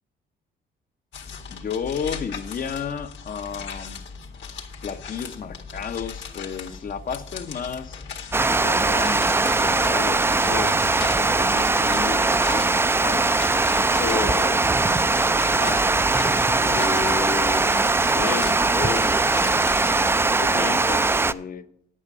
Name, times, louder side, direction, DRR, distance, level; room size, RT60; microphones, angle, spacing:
sound 1, 1.1-20.2, left 6 dB, 65° left, 1.9 m, -38 dB
voice 1, 1.5-4.0 4.8-8.0 8.5-13.3 13.7-16.1 16.6-19.9 20.3-21.6, left 6 dB, 45° left, 0.8 m, -33 dB
Water, 8.3-21.3, right 3 dB, 10° right, 0.3 m, -21 dB
9.8 x 8.5 x 5.4 m
cardioid pair, 90°, 20 cm